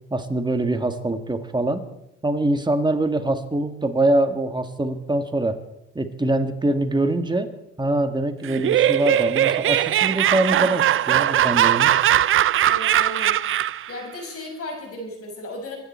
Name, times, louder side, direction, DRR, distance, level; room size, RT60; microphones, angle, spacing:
voice 1, 0.1-1.8 2.2-5.6 6.0-7.5 7.8-11.9, right 2 dB, 15° right, 7 dB, 1.9 m, -23 dB
Laughter, 8.4-13.9, right 12 dB, 45° right, 0.5 m, -20 dB
voice 2, 12.7-13.4 13.9-15.8, left 1 dB, 50° left, 1 dB, 6.3 m, -34 dB
24.0 x 10.5 x 4.5 m, 0.86 s
supercardioid pair, 70°, 31 cm